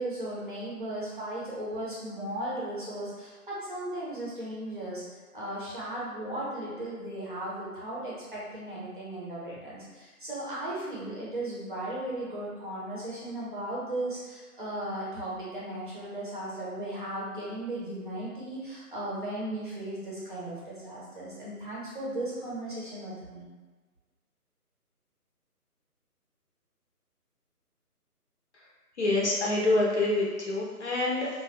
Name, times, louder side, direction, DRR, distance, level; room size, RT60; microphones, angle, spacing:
voice 1, 0.0-5.0 5.3-23.5, right 1 dB, 35° right, -7 dB, 0.7 m, -36 dB
voice 2, 29.0-31.3, left 2 dB, 45° left, -4 dB, 0.7 m, -26 dB
2.9 x 2.2 x 3.1 m, 1.3 s
figure-of-eight pair, 155°, 47 cm